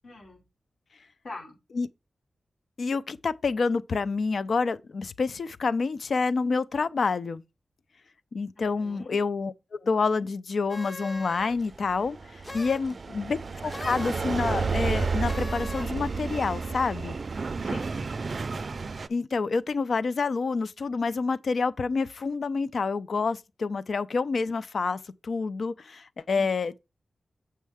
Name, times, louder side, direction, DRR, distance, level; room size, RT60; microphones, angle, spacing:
voice 1, 0.0-0.4 1.2-1.6 8.6-9.2 17.6-17.9 26.4-26.5, left 2 dB, 80° left, 4.3 m, -43 dB
voice 2, 2.8-7.4 8.3-17.2 19.1-26.8, left 4 dB, 60° left, 0.4 m, -28 dB
sound 1, 10.7-11.7 12.4-12.9 13.7-14.3 15.2-16.0, left 2 dB, 25° left, 0.7 m, -40 dB
sound 2, 11.5-19.1, right 4 dB, 50° right, 0.4 m, -31 dB
7.3 x 5.5 x 3.4 m
wide cardioid pair, 105°, 0 cm